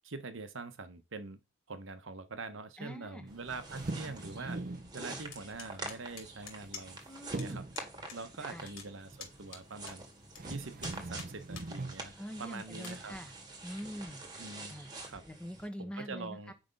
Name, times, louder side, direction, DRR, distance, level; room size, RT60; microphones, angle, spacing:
voice 1, 0.0-1.4 1.7-4.6 4.9-7.0 7.4-7.6 8.1-10.1 10.5-12.1 12.4-13.1 14.4-14.8 15.0-15.2 15.8-16.5, right 3 dB, 70° right, 1.0 m, -44 dB
voice 2, 2.8-3.3 7.0-7.7 8.4-8.7 12.2-13.3 13.6-14.2 14.7-14.9 15.3-16.5, equal, 5° left, 1.2 m, -44 dB
sound 1, 3.3-15.7, right 2 dB, 20° right, 1.6 m, -47 dB
sound 2, 3.5-4.9 6.4-7.0 7.3-7.8 9.9-10.0 10.4-12.0 12.9-13.2, right 2 dB, 40° right, 0.6 m, -41 dB
sound 3, 5.3-7.1 7.4-7.5 7.7-8.2 8.4-10.4 10.8-11.7 12.1-12.2 12.7-13.0, left 6 dB, 80° left, 2.8 m, -48 dB
8.9 x 5.2 x 5.3 m
head